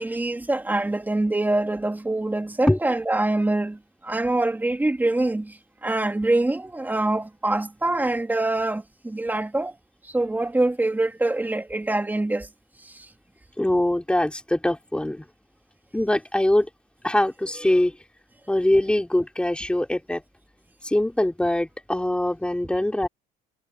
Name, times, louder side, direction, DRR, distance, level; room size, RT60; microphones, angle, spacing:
voice 1, 0.0-9.8 10.0-12.5 12.8-13.1, right 2 dB, 10° right, 2.7 m, -25 dB
voice 2, 13.6-15.2 15.9-16.7 17.0-18.0 18.5-20.2 20.8-23.1, left 1 dB, 5° left, 3.4 m, -23 dB
cardioid pair, 110°, 17 cm